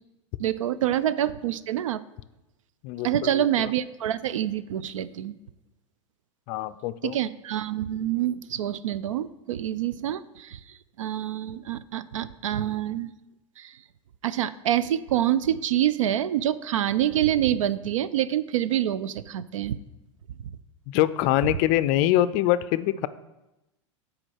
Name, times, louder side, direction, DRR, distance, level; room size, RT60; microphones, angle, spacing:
voice 1, 0.4-2.0 3.0-5.3 7.0-10.6 11.0-13.1 13.6-13.8 14.2-19.8 20.4-20.5, right 11 dB, 80° right, 16 dB, 0.4 m, -26 dB
voice 2, 2.8-3.4 6.5-7.2 20.9-23.1, left 13 dB, 50° left, 15 dB, 0.4 m, -24 dB
6.1 x 4.8 x 6.1 m, 0.96 s
hypercardioid pair, 105°, 16 cm